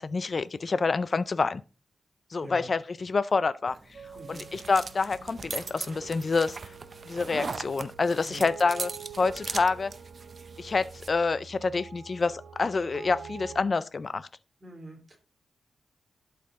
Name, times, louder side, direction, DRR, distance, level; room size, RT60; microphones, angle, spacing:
voice 1, 0.0-1.6 2.3-3.8 4.3-6.6 7.1-8.9 9.2-9.9 10.6-14.3, left 4 dB, 40° left, 0.3 m, -27 dB
sound 1, 3.7-11.1, right 4 dB, 45° right, 0.6 m, -40 dB
sound 2, 3.9-13.6, right 6 dB, 60° right, 1.7 m, -47 dB
voice 2, 4.1-4.5 8.3-8.5 14.6-15.2, right 1 dB, 20° right, 2.6 m, -44 dB
11.5 x 4.7 x 3.7 m
wide cardioid pair, 125°, 0 cm